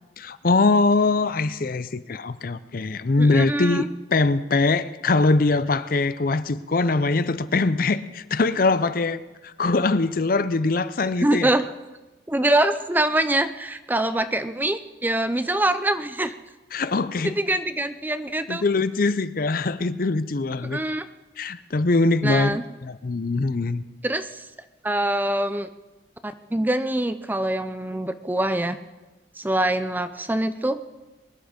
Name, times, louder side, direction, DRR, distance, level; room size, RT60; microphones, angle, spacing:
voice 1, 0.2-11.5 16.7-17.4 18.5-20.8 21.4-23.8, left 3 dB, 50° left, 14 dB, 0.6 m, -22 dB
voice 2, 3.2-3.9 11.2-11.6 12.3-16.3 17.2-18.6 20.6-21.1 22.2-22.6 24.0-24.5 24.8-25.7 26.2-28.8 29.4-30.8, right 1 dB, 10° right, 11 dB, 0.5 m, -24 dB
22.0 x 10.5 x 5.1 m, 1.2 s
head